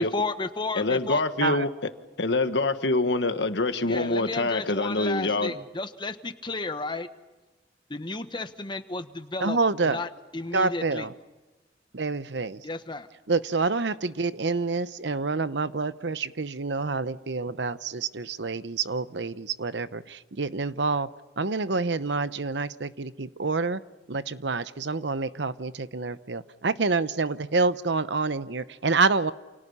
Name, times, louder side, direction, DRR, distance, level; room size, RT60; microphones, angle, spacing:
voice 1, 0.0-1.2 3.8-7.1 7.9-9.6 9.8-10.1 10.3-11.1 12.6-13.1, left 3 dB, 25° left, 10 dB, 1.3 m, -32 dB
voice 2, 0.7-1.7 2.2-5.5, left 2 dB, 70° left, 9 dB, 1.5 m, -25 dB
voice 3, 9.4-10.0 10.5-11.1 11.9-12.6 13.3-21.1 21.4-23.8 24.1-29.3, right 3 dB, 70° right, 14 dB, 0.9 m, -27 dB
29.5 x 28.5 x 5.6 m, 1.2 s
head